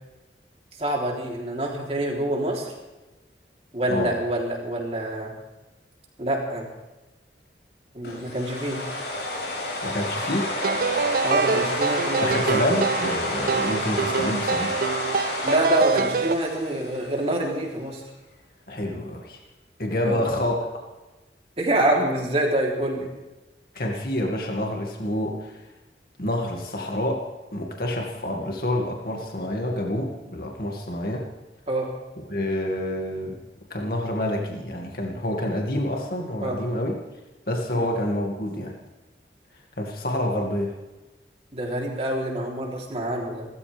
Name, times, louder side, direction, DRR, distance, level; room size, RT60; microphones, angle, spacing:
voice 1, 0.8-2.7 3.7-5.3 6.2-6.7 7.9-8.8 11.2-12.4 15.4-18.0 20.0-20.2 21.6-23.1 31.7-31.9 36.4-36.6 37.7-37.9 41.5-43.5, right 1 dB, 35° right, -1 dB, 3.6 m, -26 dB
sound 1, 8.0-17.3, left 1 dB, 75° left, 5.8 m, -30 dB
voice 2, 9.8-10.5 12.2-14.7 18.7-19.4 19.8-20.6 23.7-25.5 26.2-27.2 27.5-31.2 32.3-33.4 33.7-37.0 37.5-38.7 39.8-40.7, left 1 dB, 55° left, 0 dB, 2.4 m, -27 dB
sound 2, 10.6-16.3, right 5 dB, 55° right, 0.4 m, -25 dB
28.0 x 14.0 x 3.6 m, 1.1 s
head